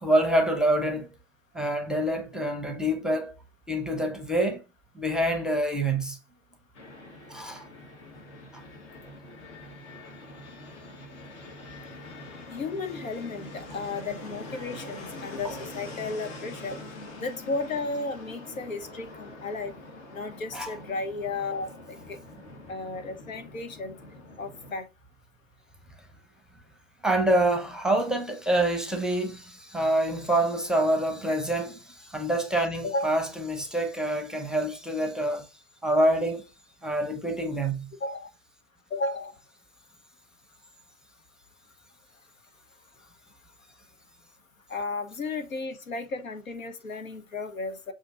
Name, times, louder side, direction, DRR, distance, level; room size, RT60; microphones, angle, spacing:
voice 1, 0.0-1.1 1.5-3.3 3.7-4.6 5.0-6.2 7.3-7.6 16.7-16.8 20.5-20.8 27.0-35.5 35.8-36.4 36.8-37.9, right 1 dB, ahead, 0.6 m, -26 dB
Fixed-wing aircraft airplane, 6.7-24.8, left 2 dB, 60° left, 1.3 m, -44 dB
voice 2, 12.5-16.8 17.2-19.7 20.1-22.2 22.7-24.0 24.4-24.8 32.8-33.2 38.0-38.3 38.9-39.3 44.7-47.9, left 3 dB, 85° left, 0.7 m, -34 dB
6.4 x 2.6 x 2.4 m
figure-of-eight pair, 85°, 40 cm